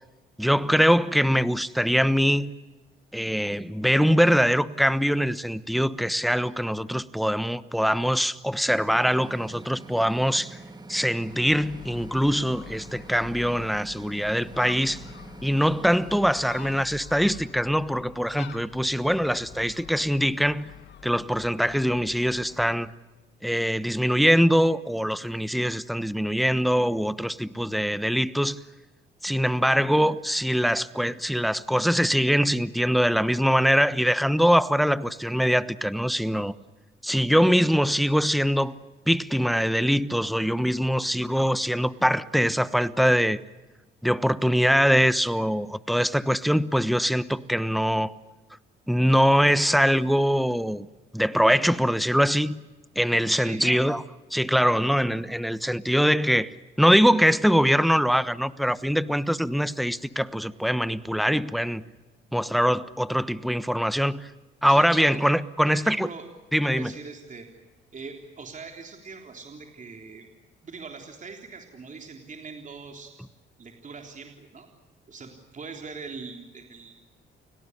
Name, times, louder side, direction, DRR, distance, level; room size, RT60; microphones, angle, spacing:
voice 1, 0.4-2.5 3.1-10.6 10.9-15.0 15.4-20.7 21.0-22.9 23.4-28.6 29.2-36.5 37.0-38.7 39.1-43.4 44.0-48.1 48.9-50.9 51.1-52.6 52.9-54.0 54.3-61.8 62.3-64.3 64.6-66.1 66.5-66.9, equal, ahead, 1.1 m, -23 dB
sound 1, 8.7-16.9, right 2 dB, 20° right, 2.0 m, -45 dB
Gull seagull, 11.3-22.7, left 9 dB, 65° left, 2.0 m, -46 dB
voice 2, 41.0-41.3 53.4-53.8 64.7-65.2 65.7-66.3 66.6-67.5 67.9-70.3 70.6-73.1 73.6-74.7 75.1-76.9, right 4 dB, 40° right, 3.6 m, -41 dB
29.5 x 18.0 x 9.8 m
cardioid pair, 90°, 20 cm